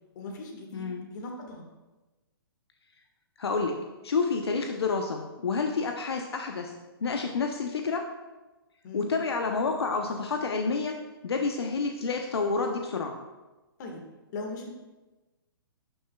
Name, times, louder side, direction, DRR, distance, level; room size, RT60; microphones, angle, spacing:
voice 1, 0.1-1.6 8.8-9.1 13.8-14.0 14.3-14.7, left 2 dB, 45° left, 2 dB, 1.7 m, -39 dB
voice 2, 0.7-1.1 3.4-6.7 7.0-8.1 8.9-13.2, left 4 dB, 80° left, 4 dB, 0.7 m, -29 dB
11.5 x 6.4 x 2.3 m, 1.1 s
hypercardioid pair, 135°, 13 cm